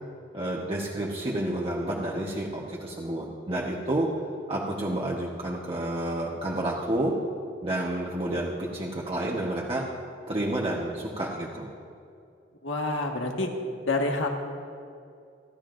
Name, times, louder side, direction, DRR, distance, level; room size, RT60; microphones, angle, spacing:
voice 1, 0.3-4.1 4.5-7.1 7.6-9.8 10.3-11.7, right 1 dB, 30° right, -4 dB, 1.1 m, -30 dB
voice 2, 12.6-13.5 13.9-14.3, left 2 dB, 90° left, 2 dB, 1.6 m, -27 dB
28.5 x 12.0 x 2.6 m, 2.4 s
head